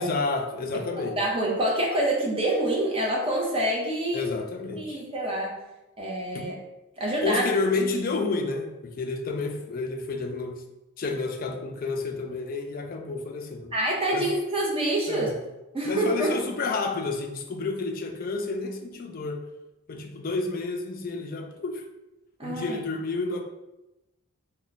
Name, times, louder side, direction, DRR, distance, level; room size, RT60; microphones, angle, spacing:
voice 1, 0.0-1.2 4.1-5.0 6.3-6.5 7.2-10.6 11.0-13.7 14.1-14.3 15.1-15.4 15.8-19.4 19.9-21.8 22.4-23.4, left 3 dB, 40° left, 3 dB, 0.4 m, -30 dB
voice 2, 1.0-4.2 4.7-5.6 6.0-6.6 7.0-7.4 13.7-15.3 15.7-16.4 22.4-22.8, right 1 dB, 25° right, -3 dB, 0.7 m, -26 dB
3.0 x 2.2 x 4.0 m, 0.98 s
head